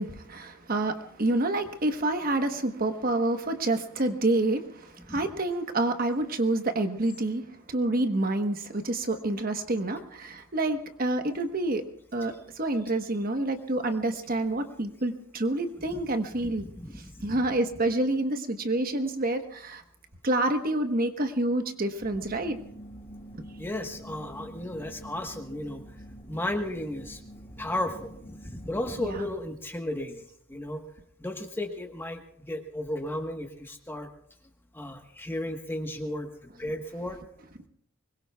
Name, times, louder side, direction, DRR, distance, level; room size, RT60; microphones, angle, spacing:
voice 1, 0.0-7.4 7.7-11.8 12.1-16.6 17.2-19.8 20.2-22.6 23.3-23.4 29.0-29.1, right 2 dB, 45° right, 7 dB, 1.2 m, -28 dB
voice 2, 16.3-17.4 20.5-20.6 23.6-25.8 26.3-27.2 27.6-30.2 30.5-30.8 31.2-34.1 34.7-37.2, left 1 dB, 10° left, 4 dB, 1.3 m, -34 dB
sound 1, 22.0-29.3, right 1 dB, 30° left, 2.6 m, -46 dB
24.0 x 21.5 x 2.3 m, 0.71 s
head